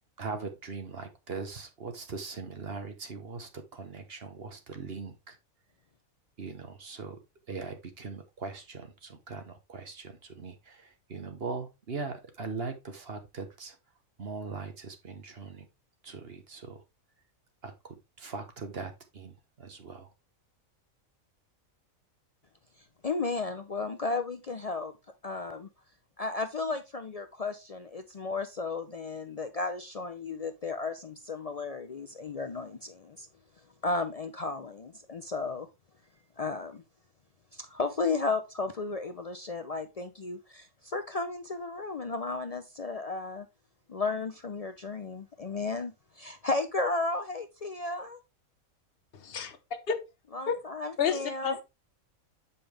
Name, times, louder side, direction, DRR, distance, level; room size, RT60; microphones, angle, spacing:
voice 1, 0.2-5.4 6.4-7.2 7.5-13.8 14.2-15.7 16.0-16.8 17.6-20.1, right 4 dB, 50° right, 1.3 m, -40 dB
voice 2, 23.0-24.9 25.2-25.7 26.2-33.3 33.8-35.7 36.4-36.8 37.5-43.5 43.9-48.2 50.3-51.6, left 3 dB, 65° left, 0.3 m, -34 dB
voice 3, 49.1-49.6 49.9-50.0 50.5-50.6 51.0-51.6, left 7 dB, 45° left, 1.2 m, -30 dB
7.1 x 5.5 x 3.3 m
omnidirectional pair, 1.4 m